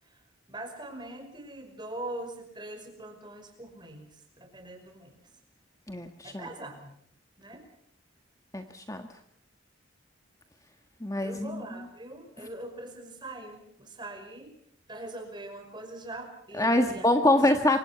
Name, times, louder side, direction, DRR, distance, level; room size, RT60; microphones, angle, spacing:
voice 1, 0.0-5.1 6.2-7.0 7.4-7.7 11.2-14.6 14.9-17.5, right 1 dB, 20° right, 5 dB, 5.5 m, -42 dB
voice 2, 5.9-6.4 8.5-9.0 11.0-11.6 16.6-17.8, left 1 dB, 15° left, 7 dB, 1.4 m, -25 dB
28.0 x 24.5 x 5.9 m, 0.66 s
head